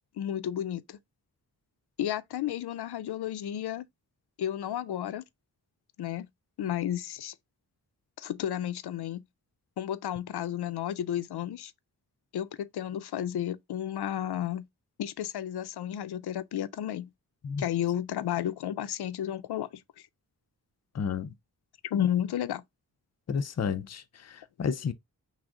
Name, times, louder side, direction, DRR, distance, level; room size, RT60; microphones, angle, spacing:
voice 1, 0.2-1.0 2.0-3.8 4.4-5.2 6.0-6.3 6.6-7.3 8.2-9.2 9.8-11.7 12.3-14.7 15.0-17.1 17.6-19.7 21.9-22.6, left 11 dB, 90° left, 0.5 m, -32 dB
voice 2, 20.9-21.3 23.3-24.9, left 6 dB, 45° left, 0.5 m, -31 dB
6.1 x 2.1 x 3.6 m
wide cardioid pair, 130°, 38 cm